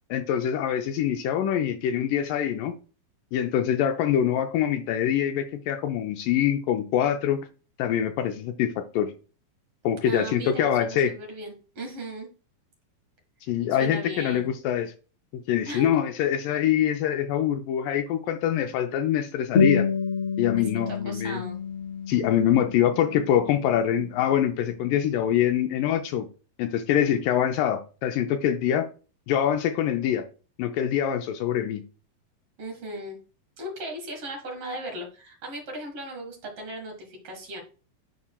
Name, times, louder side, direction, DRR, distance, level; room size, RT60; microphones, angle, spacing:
voice 1, 0.1-2.7 3.3-7.4 7.8-9.1 9.8-11.1 13.4-14.9 15.3-19.9 20.4-21.4 22.1-26.3 26.6-28.9 29.3-30.3 30.6-31.8, left 10 dB, 80° left, 1.9 m, -24 dB
voice 2, 10.0-12.3 13.8-14.5 15.7-15.9 20.6-21.6 32.6-33.2 33.6-37.6, right 1 dB, 55° right, 1.9 m, -37 dB
sound 1, 19.5-24.5, left 5 dB, 50° left, 2.5 m, -28 dB
11.0 x 4.2 x 2.2 m
omnidirectional pair, 4.3 m